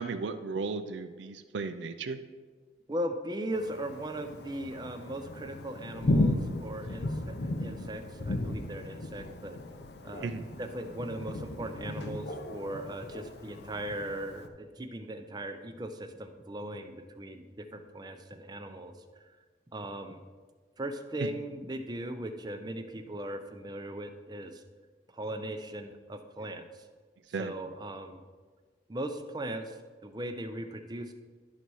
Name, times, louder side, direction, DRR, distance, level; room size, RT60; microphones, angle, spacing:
voice 1, 0.0-2.2 10.2-10.5 21.2-21.3 27.3-27.5, right 4 dB, 80° right, 10 dB, 0.4 m, -35 dB
voice 2, 2.9-9.6 10.0-10.3 10.6-18.9 19.7-20.2 20.8-24.6 25.1-26.7 27.4-28.2 28.9-29.8 30.0-31.1, right 1 dB, 25° right, 7 dB, 0.5 m, -38 dB
Thunder, 3.5-14.5, left 1 dB, 65° left, 0.6 m, -35 dB
11.5 x 4.1 x 4.6 m, 1.5 s
head